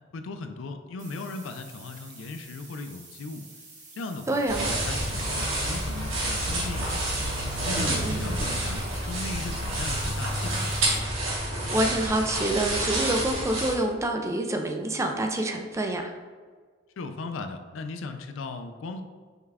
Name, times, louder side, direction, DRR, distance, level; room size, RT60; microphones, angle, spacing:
voice 1, 0.1-3.5 4.0-7.0 7.7-10.7 17.0-19.0, left 3 dB, 75° left, 7 dB, 0.4 m, -37 dB
sound 1, 1.0-11.0, right 3 dB, 40° right, 1.1 m, -49 dB
voice 2, 4.3-4.8 7.8-8.3 11.3-16.1, right 1 dB, 15° right, 4 dB, 0.3 m, -27 dB
sound 2, 4.5-13.7, right 1 dB, 80° right, 1.4 m, -29 dB
5.4 x 2.3 x 3.4 m, 1.5 s
head